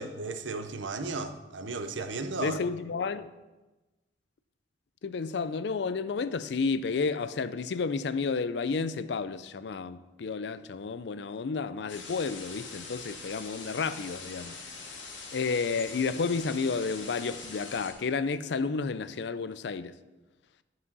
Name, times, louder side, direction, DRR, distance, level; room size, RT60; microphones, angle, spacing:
voice 1, 0.0-2.6, right 3 dB, 85° right, 0.7 m, -35 dB
voice 2, 2.4-3.3 5.0-14.6 15.3-19.9, left 4 dB, 65° left, 0.4 m, -31 dB
sound 1, 11.9-17.9, left 4 dB, 90° left, 1.6 m, -43 dB
11.0 x 4.8 x 5.4 m
head